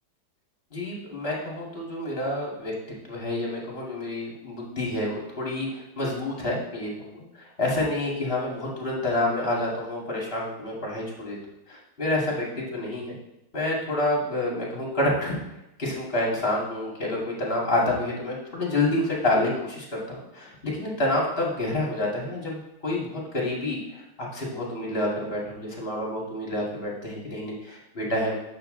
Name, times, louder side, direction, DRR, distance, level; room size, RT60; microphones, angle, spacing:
voice 1, 0.7-2.7 3.1-11.4 11.7-13.1 13.5-15.4 15.8-23.8 24.2-28.3, left 1 dB, 30° left, -3 dB, 2.3 m, -28 dB
8.8 x 7.1 x 3.9 m, 0.88 s
omnidirectional pair, 2.0 m